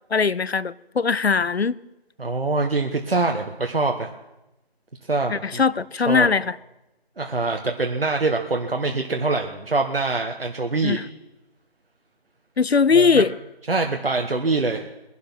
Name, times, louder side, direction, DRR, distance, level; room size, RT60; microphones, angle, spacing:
voice 1, 0.1-1.7 5.3-6.6 10.8-11.0 12.6-13.3, left 5 dB, 75° left, 0.7 m, -20 dB
voice 2, 2.2-4.1 5.1-5.6 6.1-6.3 7.2-11.0 12.9-13.2 13.7-14.8, right 3 dB, 65° right, 1.4 m, -24 dB
20.5 x 11.5 x 6.1 m
figure-of-eight pair, 165°, 32 cm